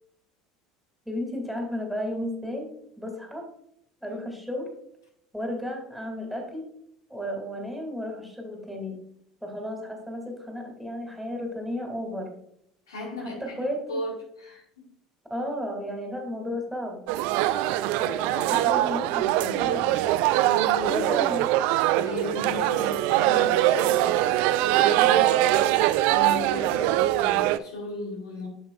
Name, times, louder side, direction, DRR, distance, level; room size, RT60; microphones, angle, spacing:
voice 1, 1.1-2.7 3.0-3.5 4.0-4.7 5.3-6.6 7.1-9.0 9.4-12.3 13.2-14.0 15.3-17.0 18.0-20.0 20.9-21.5 24.9-25.4, equal, ahead, 1 dB, 2.4 m, -33 dB
voice 2, 12.9-14.8 20.4-21.3 21.9-24.2 24.7-28.5, left 2 dB, 80° left, -2 dB, 2.0 m, -36 dB
sound 1, 17.1-27.6, right 14 dB, 65° right, 0.3 m, -22 dB
8.7 x 6.7 x 2.4 m, 0.71 s
hypercardioid pair, 70°, 2 cm